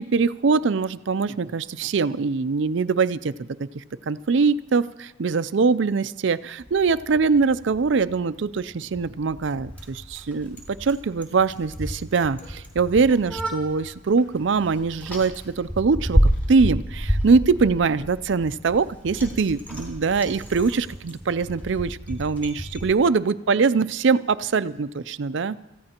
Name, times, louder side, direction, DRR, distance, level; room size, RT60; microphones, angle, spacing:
voice 1, 0.0-16.2 16.5-25.6, right 4 dB, 65° right, 14 dB, 0.5 m, -23 dB
Bicycle, 6.6-22.9, equal, 10° left, 3.3 m, -30 dB
28.0 x 15.0 x 2.9 m, 1.0 s
head